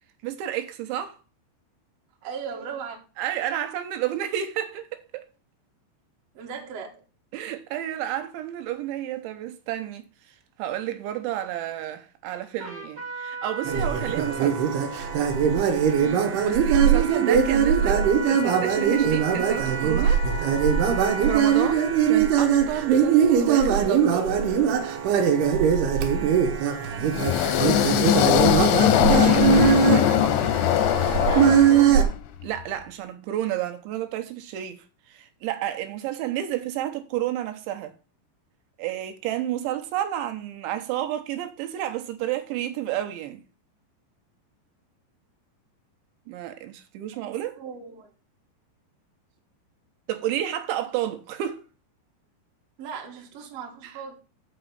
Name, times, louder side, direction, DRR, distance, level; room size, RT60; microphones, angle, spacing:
voice 1, 0.2-1.2 3.2-4.9 5.1-5.3 7.3-14.7 16.4-20.2 21.2-24.3 28.9-30.2 32.4-38.0 38.8-43.4 46.3-47.6 50.1-51.6 53.8-54.0, right 12 dB, 90° right, 3.3 m, -31 dB
voice 2, 2.2-3.0 6.3-7.0 16.0-16.4 26.9-28.2 29.5-30.2 31.3-32.2 47.2-48.1 52.8-54.1, right 6 dB, 50° right, 2.0 m, -38 dB
Trumpet, 12.6-22.1, right 3 dB, 35° right, 2.0 m, -36 dB
sound 1, 13.6-32.0, right 7 dB, 70° right, 2.8 m, -21 dB
sound 2, 27.0-32.2, left 11 dB, 80° left, 2.7 m, -21 dB
6.1 x 6.1 x 6.8 m
omnidirectional pair, 5.2 m